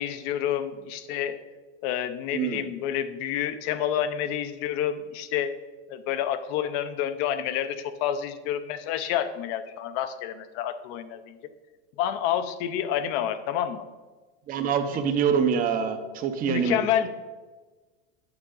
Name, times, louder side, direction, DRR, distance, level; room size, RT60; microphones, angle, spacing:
voice 1, 0.0-1.4 1.8-5.5 5.9-11.4 12.0-13.8 16.5-17.1, left 10 dB, 45° left, 11 dB, 0.7 m, -29 dB
voice 2, 2.3-2.7 14.5-16.8, right 7 dB, 25° right, 7 dB, 0.7 m, -25 dB
8.8 x 6.6 x 3.8 m, 1.3 s
supercardioid pair, 140°, 34 cm